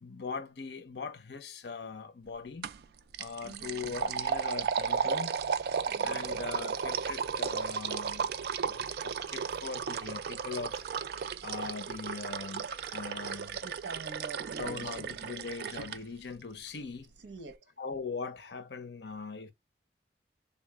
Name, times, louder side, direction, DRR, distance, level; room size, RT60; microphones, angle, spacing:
voice 1, 0.0-2.7 3.2-5.4 6.0-8.3 8.6-10.8 11.4-13.6 14.6-17.1 17.8-19.5, left 4 dB, 70° left, 0.6 m, -41 dB
sound 1, 2.6-2.8 3.1-16.0, right 6 dB, 60° right, 0.3 m, -34 dB
voice 2, 3.4-4.0 5.9-6.5 13.6-15.2 17.2-17.7, right 3 dB, 75° right, 0.8 m, -46 dB
3.5 x 2.3 x 3.4 m
head